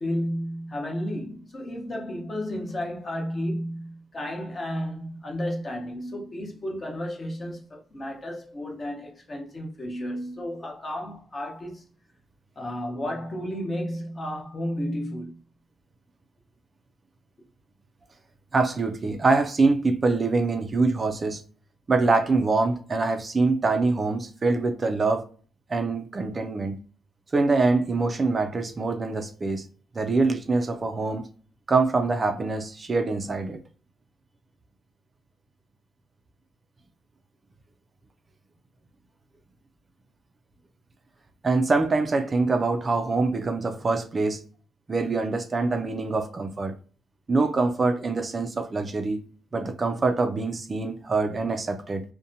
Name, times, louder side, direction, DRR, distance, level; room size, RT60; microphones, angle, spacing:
voice 1, 0.0-11.8 12.6-15.4, equal, 30° left, 0.7 m, -32 dB
voice 2, 18.5-21.4 21.9-25.3 25.7-26.7 27.3-29.6 30.0-31.3 31.7-33.6 41.4-44.4 44.9-46.7 47.3-49.2 49.5-52.0, right 3 dB, 30° right, 0.3 m, -24 dB
2.6 x 2.1 x 2.6 m
cardioid pair, 125°, 0 cm